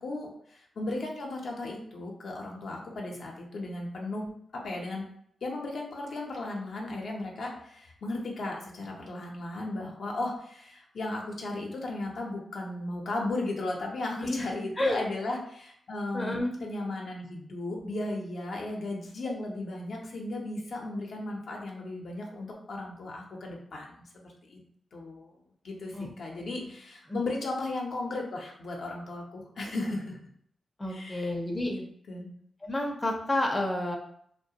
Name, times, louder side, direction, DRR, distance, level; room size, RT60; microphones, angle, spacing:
voice 1, 0.0-4.3 4.6-5.0 5.4-24.6 24.9-25.3 25.6-30.2 30.9-31.3 31.7-32.3, left 2 dB, 70° left, 0 dB, 0.6 m, -36 dB
voice 2, 16.1-16.5 25.9-26.1 26.4-26.6 27.1-27.2 30.8-31.7 32.6-34.0, left 1 dB, 15° left, 0 dB, 0.5 m, -30 dB
2.3 x 2.1 x 2.7 m, 0.67 s
cardioid pair, 85°, 0 cm